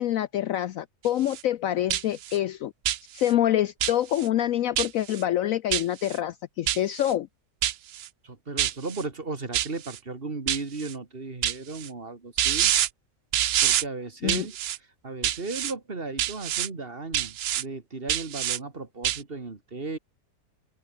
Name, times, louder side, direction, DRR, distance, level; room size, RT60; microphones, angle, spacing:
voice 1, 0.0-2.7 3.1-7.3 14.2-14.5, left 12 dB, 65° left, 0.9 m, -26 dB
sound 1, 1.1-1.4 1.9-2.4 2.8-3.3 3.8-4.3 4.8-5.2 5.7-6.2 6.7-7.1 7.6-8.1 8.6-9.0 9.5-10.0 10.5-10.9 11.4-11.9 12.4-12.9 13.3-13.8 14.3-14.8 15.2-15.7 16.2-16.7 17.1-17.6 18.1-18.6 19.0-19.2, right 12 dB, 85° right, 0.5 m, -26 dB
voice 2, 8.2-12.8 13.6-14.6 15.0-20.0, right 3 dB, 35° right, 2.2 m, -35 dB
omnidirectional pair, 1.7 m